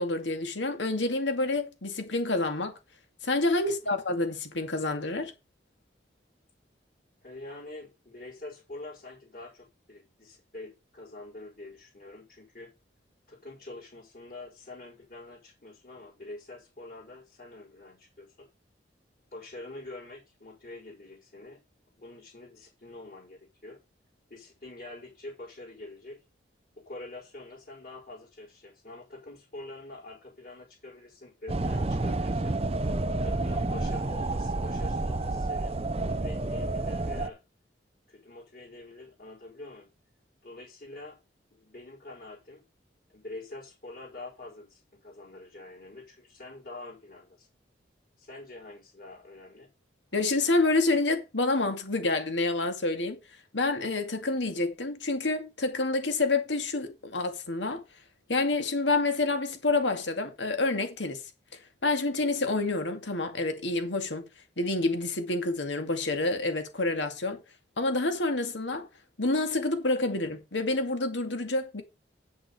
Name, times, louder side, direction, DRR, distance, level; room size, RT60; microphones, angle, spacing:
voice 1, 0.0-2.7 3.2-5.3 50.1-53.2 53.5-57.8 58.3-61.2 61.8-64.2 64.6-67.4 67.8-68.9 69.2-71.8, left 2 dB, 80° left, 2.2 m, -28 dB
voice 2, 7.2-12.7 13.3-18.5 19.3-21.6 22.0-23.8 24.3-26.2 26.8-32.6 33.2-37.4 38.1-39.9 40.4-41.2 41.5-42.6 43.1-47.5 48.2-49.7, left 2 dB, 50° left, 5.2 m, -45 dB
sound 1, 31.5-37.3, right 2 dB, 30° right, 0.6 m, -29 dB
9.1 x 7.8 x 4.4 m
head